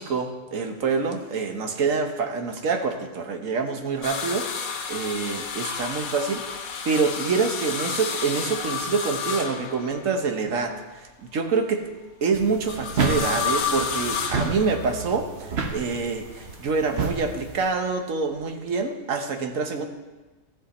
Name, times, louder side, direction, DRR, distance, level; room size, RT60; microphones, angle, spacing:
voice 1, 0.0-4.5 4.9-11.8 12.2-19.9, right 4 dB, 70° right, 5 dB, 1.4 m, -26 dB
sound 1, 4.0-10.3 12.7-15.2 16.2-17.0 18.4-18.5, left 6 dB, 90° left, 1.3 m, -31 dB
sound 2, 12.3-17.7, right 4 dB, 50° right, 1.1 m, -31 dB
14.5 x 6.0 x 4.2 m, 1.2 s
omnidirectional pair, 1.5 m